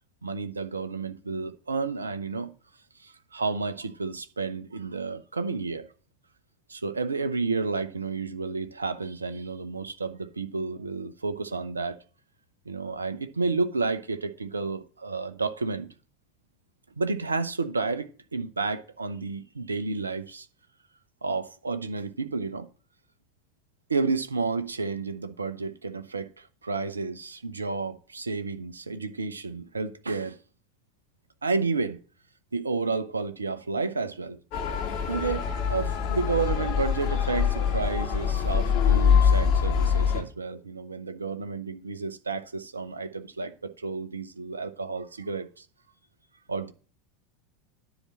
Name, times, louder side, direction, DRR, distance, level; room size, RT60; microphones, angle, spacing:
voice 1, 0.2-2.5 3.0-5.9 6.7-12.0 12.7-15.9 17.0-20.5 21.2-22.7 23.9-26.3 26.6-30.4 31.4-32.0 32.5-34.4 35.1-45.6 46.5-46.7, right 4 dB, 80° right, 0.8 m, -31 dB
Motor vehicle (road) / Siren, 34.5-40.2, left 7 dB, 50° left, 2.3 m, -24 dB
10.0 x 4.1 x 7.4 m
figure-of-eight pair, 80°, 0 cm